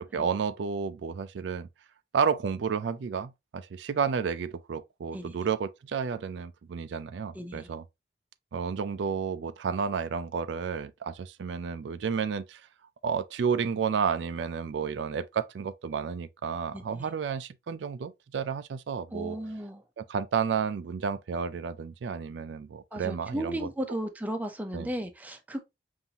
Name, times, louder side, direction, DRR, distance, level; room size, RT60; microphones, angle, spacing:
voice 1, 0.0-1.7 2.1-7.8 8.5-12.6 13.0-19.4 20.0-23.7 24.7-24.9, right 6 dB, 80° right, 0.4 m, -31 dB
voice 2, 7.3-7.7 16.7-17.1 19.1-19.8 22.9-25.6, right 1 dB, 10° right, 0.5 m, -35 dB
5.4 x 2.6 x 2.8 m
head